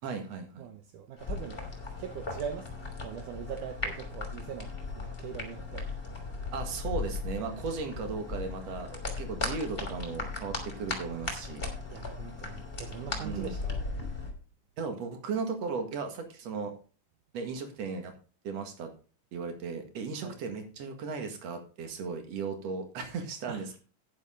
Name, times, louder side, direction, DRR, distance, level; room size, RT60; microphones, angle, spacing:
voice 1, 0.0-0.7 6.5-11.7 13.1-13.5 14.8-16.7 17.3-18.1 18.4-18.9 19.3-23.8, right 5 dB, 55° right, 2.8 m, -36 dB
voice 2, 0.6-1.6 2.0-2.7 3.0-5.9 11.9-13.9 20.2-20.4 23.5-23.6, right 8 dB, 75° right, 2.4 m, -41 dB
sound 1, 1.2-14.3, left 3 dB, 15° left, 2.9 m, -37 dB
10.5 x 10.0 x 3.7 m
omnidirectional pair, 3.8 m